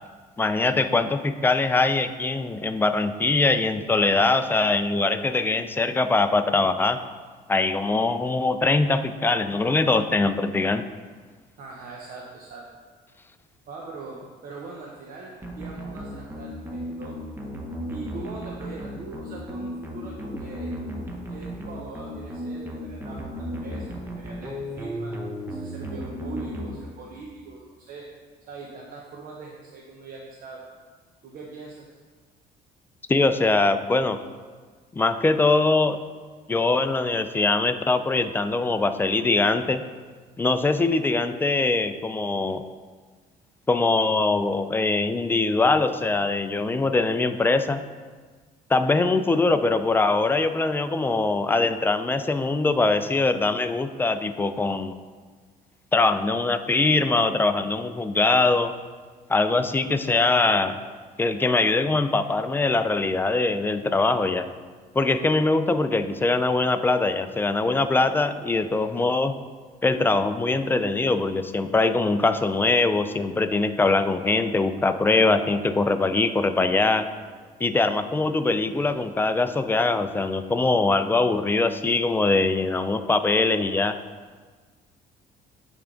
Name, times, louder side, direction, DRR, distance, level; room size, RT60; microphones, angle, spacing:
voice 1, 0.4-7.0 7.5-10.8 33.1-34.2 34.9-36.0 36.5-39.8 40.4-42.6 43.7-47.8 48.7-54.9 55.9-58.7 59.3-60.7 61.2-64.5 64.9-69.3 69.8-77.1 77.6-83.9, left 3 dB, 10° left, 9 dB, 0.3 m, -22 dB
voice 2, 11.6-12.6 13.7-17.2 17.9-20.8 21.3-25.1 25.5-28.1 28.5-30.6 31.2-32.0, right 3 dB, 55° right, -2 dB, 0.8 m, -41 dB
sound 1, 15.4-27.3, equal, 15° right, 0.8 m, -35 dB
10.0 x 3.5 x 3.7 m, 1.5 s
cardioid pair, 110°, 17 cm